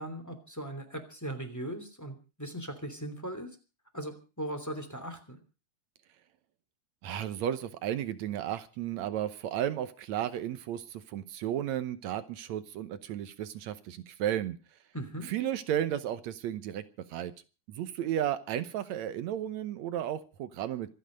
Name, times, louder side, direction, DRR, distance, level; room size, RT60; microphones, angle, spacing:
voice 1, 0.0-3.5 3.9-5.4 14.9-15.3, right 1 dB, 5° left, 6 dB, 2.6 m, -39 dB
voice 2, 7.0-14.6 15.3-16.8 17.1-17.3 17.7-20.9, right 11 dB, 75° right, 12 dB, 2.2 m, -33 dB
26.0 x 9.2 x 5.1 m, 0.34 s
omnidirectional pair, 3.4 m